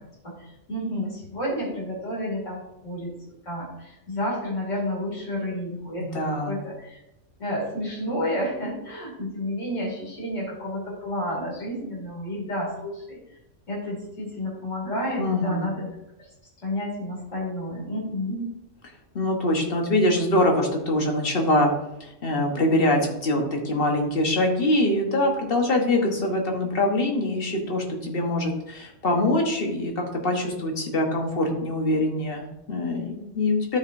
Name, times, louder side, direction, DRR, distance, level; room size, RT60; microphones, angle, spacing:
voice 1, 0.2-3.1 3.4-7.0 7.4-13.2 13.7-15.9 16.6-18.5, left 1 dB, 90° left, -5 dB, 3.0 m, -30 dB
voice 2, 6.0-6.7 15.2-15.8 19.1-21.7 22.0-33.8, left 1 dB, 50° left, 1 dB, 1.5 m, -24 dB
12.5 x 4.9 x 2.7 m, 0.89 s
omnidirectional pair, 1.2 m